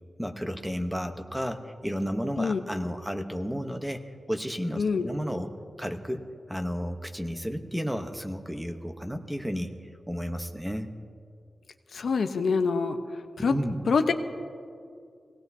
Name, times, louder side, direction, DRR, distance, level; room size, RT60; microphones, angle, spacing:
voice 1, 0.2-4.0 4.3-5.5 5.8-9.7 10.1-10.9 13.5-13.8, equal, 5° right, 6 dB, 0.9 m, -32 dB
voice 2, 11.9-13.0 13.4-13.5 13.9-14.1, left 5 dB, 85° left, 6 dB, 0.8 m, -25 dB
24.0 x 18.0 x 2.7 m, 2.3 s
wide cardioid pair, 105°, 0 cm